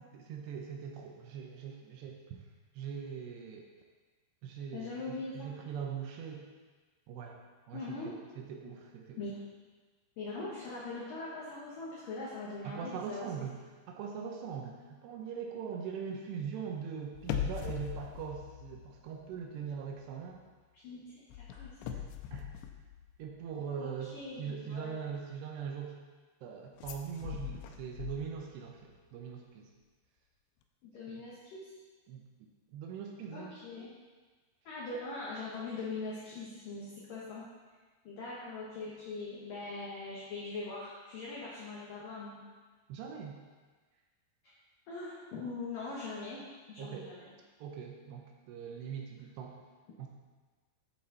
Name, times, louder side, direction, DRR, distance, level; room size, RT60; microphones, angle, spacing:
voice 1, 0.1-2.4 2.7-3.7 4.4-6.4 7.1-7.4 7.7-9.2 12.6-13.6 13.9-20.4 21.9-22.0 22.3-22.5 23.2-26.0 26.4-29.7 31.1-31.2 32.1-33.6 42.9-43.4 46.8-47.1 47.6-49.6 50.0-50.1, right 7 dB, 75° right, 1 dB, 2.7 m, -41 dB
voice 2, 4.7-5.5 7.7-8.2 9.2-9.3 10.2-13.3 20.7-21.7 23.8-25.0 30.8-31.7 33.3-33.9 34.6-37.4 38.0-42.5 44.9-46.4 46.7-47.3, left 3 dB, 60° left, -7 dB, 2.6 m, -41 dB
sound 1, 17.1-19.4 19.7-20.0 21.3-23.5 26.8-28.7 29.0-29.1, left 9 dB, 85° left, 2.8 m, -41 dB
11.5 x 7.6 x 4.1 m, 1.4 s
omnidirectional pair, 5.3 m